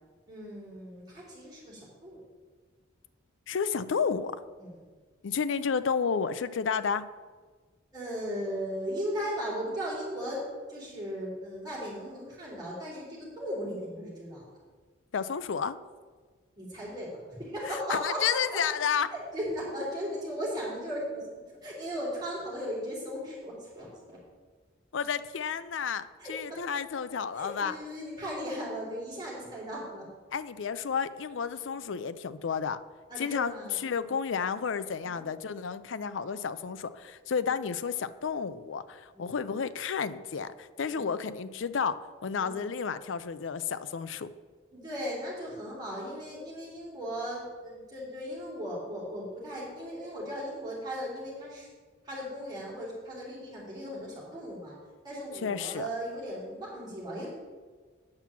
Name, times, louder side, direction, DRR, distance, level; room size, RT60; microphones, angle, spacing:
voice 1, 0.3-2.2 4.6-4.8 7.9-10.4 10.7-14.4 16.6-18.2 18.5-18.6 19.1-21.2 21.6-24.2 26.2-26.6 27.3-30.0 31.5-31.6 33.1-34.1 35.0-35.2 37.4-37.6 39.1-39.4 40.9-41.3 42.4-42.7 44.7-51.7 52.0-54.8 55.0-57.3, equal, 20° right, -6 dB, 3.5 m, -37 dB
voice 2, 3.5-4.4 5.2-7.1 15.1-15.8 17.7-19.1 24.9-27.7 30.3-32.8 33.2-44.3 55.4-55.9, left 6 dB, 75° left, 14 dB, 0.5 m, -31 dB
8.7 x 5.9 x 7.2 m, 1.4 s
head